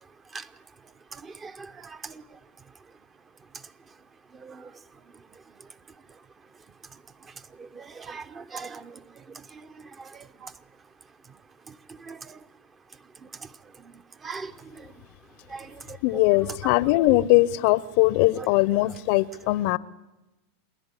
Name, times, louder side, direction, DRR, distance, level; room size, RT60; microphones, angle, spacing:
voice 1, 1.2-2.1 4.4-4.7 7.6-8.9 10.0-10.5 12.0-12.2 14.2-14.5 15.5-16.0, right 4 dB, 25° right, 13 dB, 0.9 m, -40 dB
voice 2, 16.0-19.8, left 18 dB, 60° left, 21 dB, 0.6 m, -21 dB
26.0 x 10.5 x 9.9 m, 1.1 s
hypercardioid pair, 110°, 0 cm